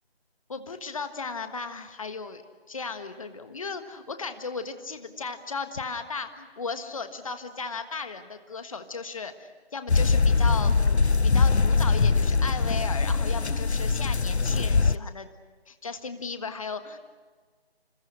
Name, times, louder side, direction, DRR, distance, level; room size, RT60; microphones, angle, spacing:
voice 1, 0.5-2.4 2.7-15.3 15.7-17.0, left 4 dB, 30° left, 8 dB, 1.5 m, -36 dB
sound 1, 9.9-15.0, left 4 dB, 90° left, 0.9 m, -22 dB
28.0 x 27.5 x 6.4 m, 1.5 s
figure-of-eight pair, 160°, 32 cm